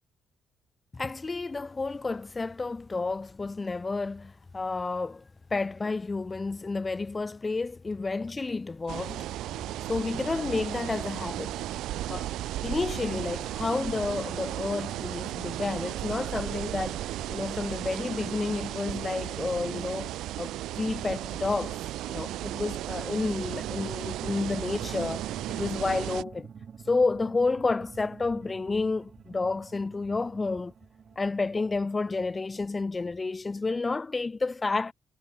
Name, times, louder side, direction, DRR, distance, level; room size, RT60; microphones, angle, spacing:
voice 1, 0.9-9.3 9.9-11.6 12.1-12.3 12.6-20.1 20.4-21.8 22.1-25.2 25.5-26.5 26.9-30.7 31.2-34.9, left 3 dB, 25° left, 1.1 m, -30 dB
sound 1, 8.9-26.2, right 14 dB, 85° right, 0.3 m, -35 dB
sound 2, 23.4-32.6, right 7 dB, 50° right, 1.5 m, -47 dB
cardioid pair, 90°, 0 cm